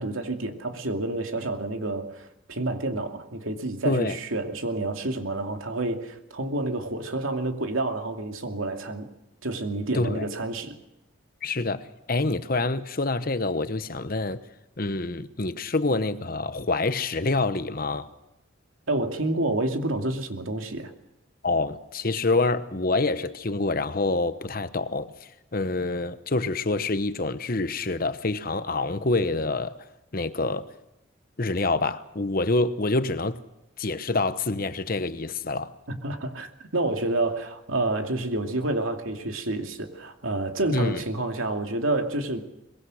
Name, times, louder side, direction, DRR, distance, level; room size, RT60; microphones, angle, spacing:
voice 1, 0.0-9.1 9.4-10.7 18.9-20.9 35.9-42.4, right 2 dB, 80° right, 2.6 m, -29 dB
voice 2, 3.8-4.2 9.9-10.3 11.4-14.4 14.8-18.1 21.4-29.7 30.1-30.7 31.4-33.4 33.8-35.7 40.7-41.0, left 3 dB, 45° left, 1.0 m, -26 dB
23.5 x 22.0 x 6.5 m
head